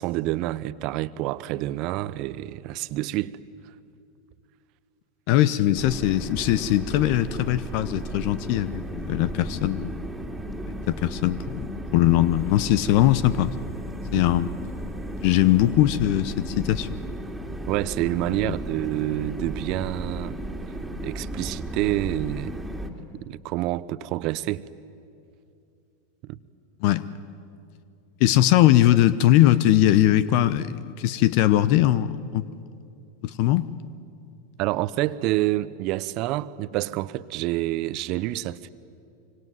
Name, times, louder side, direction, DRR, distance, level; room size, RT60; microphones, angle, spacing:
voice 1, 0.0-3.4 14.1-14.2 17.7-20.4 21.0-22.5 23.2-24.6 26.2-26.4 34.6-38.7, right 16 dB, 50° right, 0.8 m, -28 dB
voice 2, 5.3-10.0 10.7-13.5 14.1-14.5 15.2-16.9 18.4-18.5 26.8-27.1 28.2-32.4 33.2-33.7, left 14 dB, 55° left, 0.8 m, -21 dB
sound 1, 5.8-22.9, right 1 dB, 5° right, 2.7 m, -34 dB
25.0 x 25.0 x 9.5 m
hypercardioid pair, 95°, 0 cm